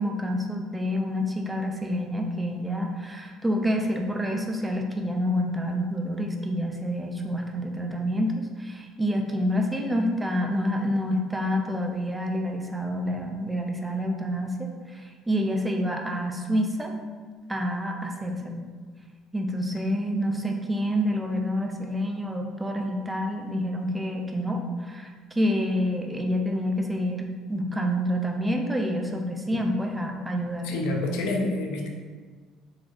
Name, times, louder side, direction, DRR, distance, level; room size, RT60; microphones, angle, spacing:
voice 1, 0.0-16.9 17.5-18.6 19.3-25.1 25.3-31.2, equal, 10° right, 2 dB, 0.5 m, -28 dB
voice 2, 30.6-31.9, left 2 dB, 85° left, 1 dB, 0.5 m, -28 dB
3.9 x 2.9 x 2.5 m, 1.5 s
cardioid pair, 105°, 0 cm